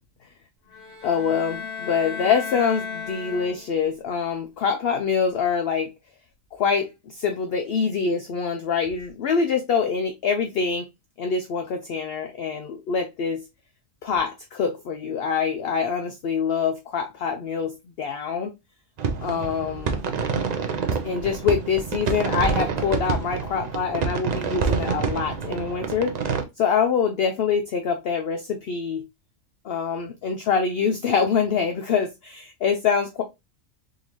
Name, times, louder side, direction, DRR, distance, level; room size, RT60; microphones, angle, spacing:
sound 1, 0.7-3.9, left 6 dB, 45° left, 1.2 m, -35 dB
voice 1, 1.0-5.9 6.5-10.8 11.2-13.4 14.0-18.5 19.2-20.0 21.0-26.2 26.6-29.0 29.6-33.2, left 6 dB, 65° left, 0.6 m, -25 dB
sound 2, 19.0-26.4, right 5 dB, 75° right, 0.3 m, -27 dB
3.8 x 2.6 x 2.9 m
omnidirectional pair, 1.4 m